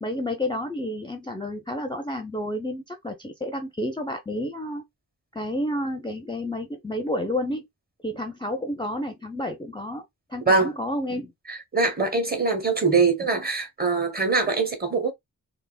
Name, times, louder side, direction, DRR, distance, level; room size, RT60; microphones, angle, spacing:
voice 1, 0.0-4.8 5.3-7.7 8.0-10.0 10.3-11.3, left 1 dB, 15° left, 0.4 m, -30 dB
voice 2, 11.5-15.1, right 4 dB, 25° right, 0.8 m, -23 dB
3.3 x 2.0 x 2.2 m
wide cardioid pair, 95°, 35 cm